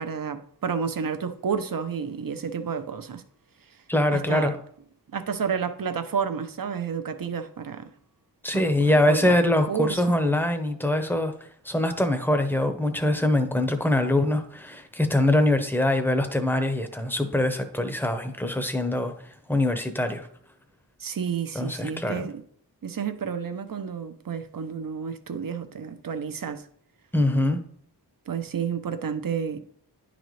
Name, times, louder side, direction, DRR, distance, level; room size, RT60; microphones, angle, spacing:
voice 1, 0.0-3.2 4.1-4.5 5.1-7.9 8.5-10.2 21.0-22.4 22.8-26.7 28.3-29.6, right 6 dB, 55° right, 0.7 m, -31 dB
voice 2, 3.9-4.6 8.4-11.3 11.6-19.1 19.5-20.3 21.5-22.3 27.1-27.6, left 1 dB, 5° left, 0.8 m, -23 dB
9.9 x 4.0 x 3.2 m
wide cardioid pair, 65°, 41 cm